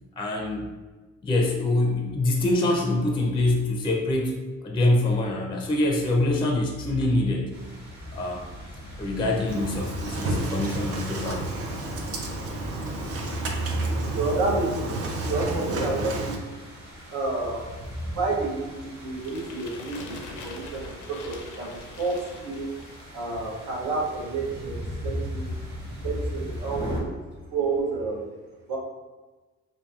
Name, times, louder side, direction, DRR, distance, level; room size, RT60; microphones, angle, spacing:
voice 1, 0.2-0.7 1.2-4.4 4.6-7.5 8.1-8.4 9.0-11.5, left 2 dB, 15° left, 0 dB, 0.4 m, -25 dB
sound 1, 7.5-27.0, equal, 35° right, 1.2 m, -39 dB
Engine starting, 9.5-16.4, right 2 dB, 50° right, 0.5 m, -30 dB
voice 2, 13.7-16.5 17.1-17.7 18.1-22.7 23.1-25.6 25.9-27.1 27.5-28.2 28.7-28.8, right 3 dB, 85° right, -3 dB, 0.7 m, -30 dB
sound 2, 19.2-23.2, left 3 dB, 85° left, 0.5 m, -43 dB
2.8 x 2.5 x 2.3 m, 1.2 s
cardioid pair, 90°, 30 cm